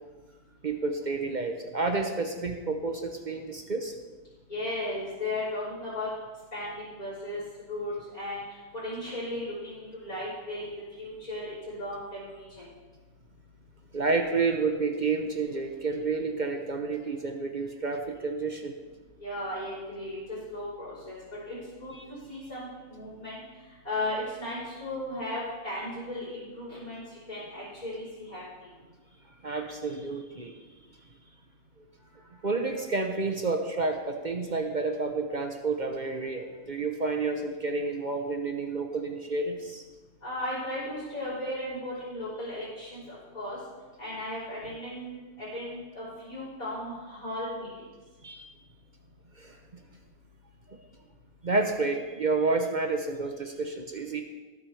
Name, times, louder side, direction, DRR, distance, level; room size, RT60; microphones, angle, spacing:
voice 1, 0.6-3.9 13.9-18.7 21.9-22.1 29.4-30.6 32.1-39.8 48.2-48.5 49.4-49.6 50.7-50.8 51.4-54.2, right 3 dB, 40° right, 4 dB, 0.7 m, -30 dB
voice 2, 4.5-6.1 6.5-7.4 7.7-8.4 8.8-12.6 19.2-20.2 20.5-21.2 21.5-21.9 22.3-23.4 23.8-28.4 40.2-43.6 44.0-47.7, left 1 dB, 25° left, -13 dB, 4.0 m, -36 dB
18.0 x 7.9 x 3.3 m, 1.3 s
omnidirectional pair, 1.5 m